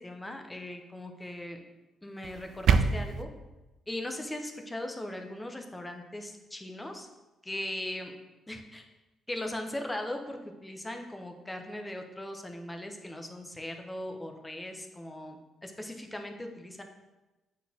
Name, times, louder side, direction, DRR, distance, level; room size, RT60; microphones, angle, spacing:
voice 1, 0.0-1.6 2.0-3.3 3.9-7.1 7.4-8.1 8.5-8.9 9.3-16.8, left 1 dB, 15° left, 4 dB, 0.8 m, -39 dB
sound 1, 2.2-3.2, right 6 dB, 70° right, 0.3 m, -25 dB
7.9 x 4.3 x 2.8 m, 1.1 s
cardioid pair, 90°, 0 cm